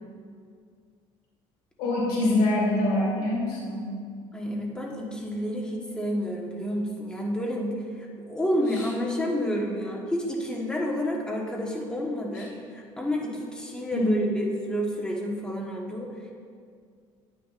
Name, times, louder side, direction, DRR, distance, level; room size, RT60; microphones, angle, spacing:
voice 1, 1.8-3.9 8.7-8.9 12.3-12.4 13.9-14.3, left 1 dB, 80° left, -4 dB, 2.2 m, -25 dB
voice 2, 4.3-16.3, equal, 5° left, -2 dB, 1.3 m, -30 dB
9.9 x 9.5 x 2.5 m, 2.2 s
cardioid pair, 130°, 12 cm